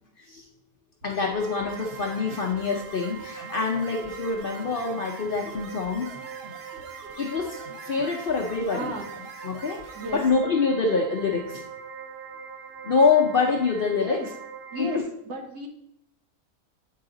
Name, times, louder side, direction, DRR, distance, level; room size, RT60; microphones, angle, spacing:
voice 1, 0.2-0.5 1.0-6.1 7.2-8.9 9.4-11.6 12.8-14.2 14.8-15.0, left 4 dB, 55° left, 1 dB, 0.6 m, -25 dB
sound 1, 1.0-10.3, right 2 dB, 45° right, 1.2 m, -46 dB
sound 2, 1.2-15.0, right 7 dB, 65° right, 0.6 m, -41 dB
voice 2, 8.5-9.1 9.9-10.2 14.0-14.3 14.7-15.7, equal, 85° right, 1 dB, 1.7 m, -35 dB
8.6 x 4.8 x 3.8 m, 0.77 s
omnidirectional pair, 1.5 m